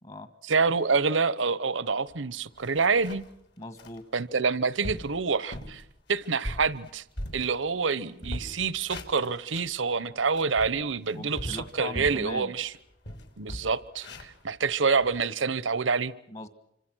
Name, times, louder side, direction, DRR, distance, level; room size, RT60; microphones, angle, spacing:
voice 1, 0.5-3.2 4.1-5.8 6.1-7.0 7.3-12.7 13.4-16.1, right 5 dB, 80° right, 18 dB, 1.0 m, -27 dB
sound 1, 2.1-2.2 2.6-3.4 3.8-4.0 4.5-4.6 4.8-5.1 5.5-5.8 6.2-7.9 8.2-9.8 10.2-12.3 12.7-12.8 13.0-15.2, equal, 60° left, 3.2 m, -39 dB
voice 2, 3.6-4.1 11.1-12.5 16.3-16.5, left 2 dB, 35° left, 10 dB, 1.7 m, -39 dB
27.0 x 26.0 x 6.3 m, 0.77 s
head